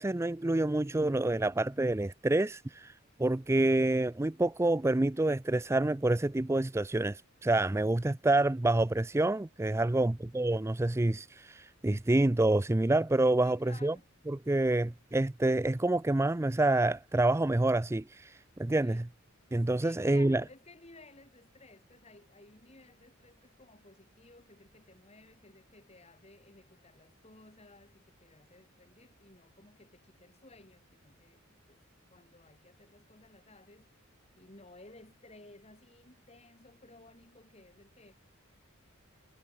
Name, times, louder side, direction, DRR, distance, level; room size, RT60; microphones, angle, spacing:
voice 1, 0.0-2.9 3.2-13.9 14.3-19.0 19.5-20.4, right 2 dB, 15° right, 0.4 m, -27 dB
voice 2, 9.8-10.2 13.4-14.1 18.6-19.1 19.5-31.8 32.1-33.9 34.4-38.1, left 2 dB, 30° left, 4.2 m, -57 dB
head